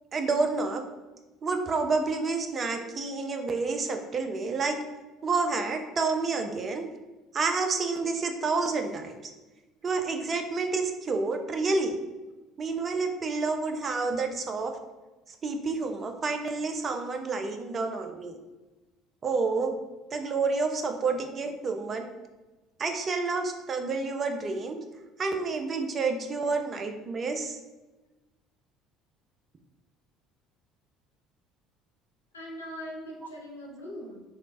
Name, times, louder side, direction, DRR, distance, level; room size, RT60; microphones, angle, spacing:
voice 1, 0.1-0.8 1.4-4.8 5.2-6.9 7.3-9.3 9.8-12.0 12.6-14.8 15.4-18.4 19.2-19.8 20.1-22.1 22.8-24.8 25.2-27.6, right 4 dB, 35° right, 5 dB, 0.3 m, -29 dB
voice 2, 32.3-34.2, equal, 80° left, -3 dB, 0.5 m, -40 dB
3.1 x 2.0 x 2.4 m, 1.1 s
figure-of-eight pair, 60°, 0 cm